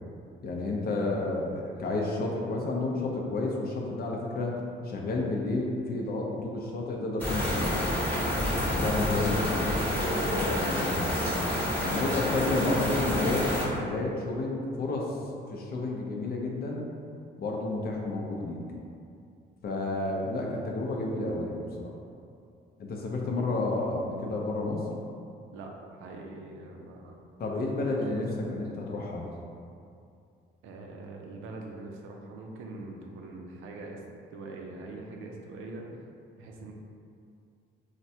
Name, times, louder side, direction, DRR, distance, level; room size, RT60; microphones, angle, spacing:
voice 1, 0.4-4.6 4.8-7.9 8.7-11.2 11.8-15.2 15.5-16.8 17.4-18.6 19.6-21.9 22.8-24.8 27.4-29.3, left 2 dB, 50° left, -1 dB, 0.5 m, -31 dB
sound 1, 7.2-13.7, equal, 10° left, 0.8 m, -28 dB
voice 2, 25.5-27.2 27.8-28.0 30.6-34.0 34.3-36.0 36.4-36.7, right 2 dB, 85° right, 1 dB, 0.4 m, -43 dB
3.2 x 2.1 x 2.7 m, 2.4 s
cardioid pair, 90°, 20 cm